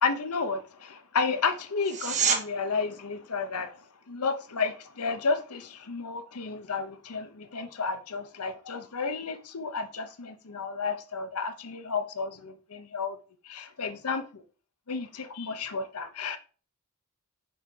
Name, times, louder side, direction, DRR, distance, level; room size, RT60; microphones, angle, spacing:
voice 1, 0.0-3.8 4.1-13.2 13.4-14.4 14.9-16.4, left 4 dB, 80° left, 0.9 m, -32 dB
sound 1, 1.8-2.4 13.8-13.9, right 6 dB, 35° right, 1.3 m, -26 dB
6.6 x 4.3 x 4.8 m
head